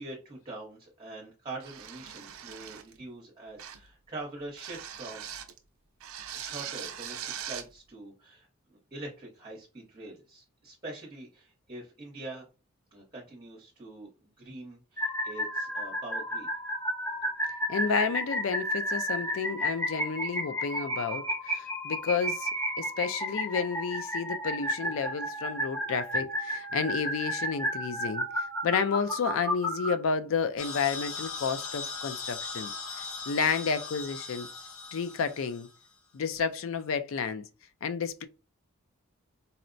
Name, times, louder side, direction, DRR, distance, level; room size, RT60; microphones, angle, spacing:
voice 1, 0.0-5.3 6.3-12.4 12.9-16.5, right 2 dB, 25° right, 0.9 m, -44 dB
sound 1, 1.6-3.0 3.6-3.9 4.6-5.6 6.0-7.7, right 9 dB, 75° right, 0.5 m, -41 dB
sound 2, 15.0-29.9, equal, 10° left, 0.6 m, -32 dB
voice 2, 17.7-22.5 22.8-32.7 33.0-34.5 34.9-35.7 36.1-37.4 37.8-38.3, left 5 dB, 70° left, 0.4 m, -31 dB
sound 3, 30.6-35.8, left 4 dB, 85° left, 0.8 m, -39 dB
4.1 x 2.1 x 2.5 m
head